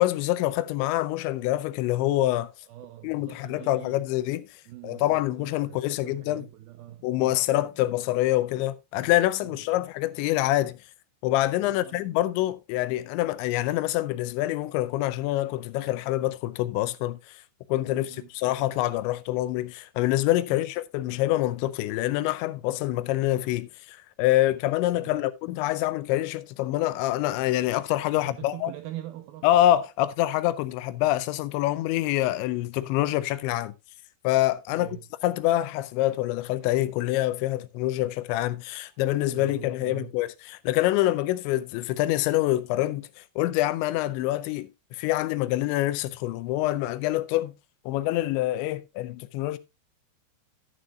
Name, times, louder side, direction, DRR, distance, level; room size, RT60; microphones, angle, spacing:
voice 1, 0.0-2.5 3.0-4.5 4.8-6.5 7.0-10.8 11.2-17.4 17.7-28.7 29.4-33.7 34.2-34.9 35.2-47.5 47.9-49.6, left 15 dB, 85° left, 3.0 m, -26 dB
voice 2, 2.6-4.0 4.7-7.4 7.7-7.8 9.5-9.8 11.6-12.0 17.9-18.3 20.5-20.6 22.9-23.0 24.9-25.3 28.2-29.5 34.7-35.1 38.9-39.0 39.3-40.2, right 14 dB, 85° right, 2.1 m, -44 dB
11.5 x 10.5 x 2.3 m
omnidirectional pair, 5.1 m